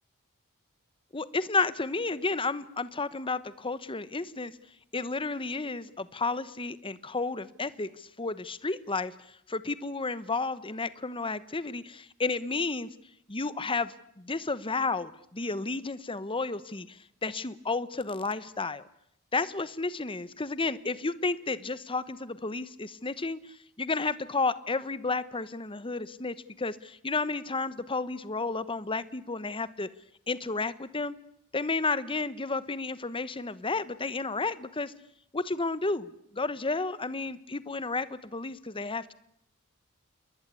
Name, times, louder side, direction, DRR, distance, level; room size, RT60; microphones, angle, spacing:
voice 1, 1.1-4.5 4.9-9.1 9.5-12.9 13.3-18.9 19.3-23.4 23.8-29.9 30.3-31.2 31.5-34.9 35.3-39.1, left 3 dB, 25° left, 15 dB, 1.1 m, -32 dB
28.5 x 22.0 x 8.4 m, 0.74 s
head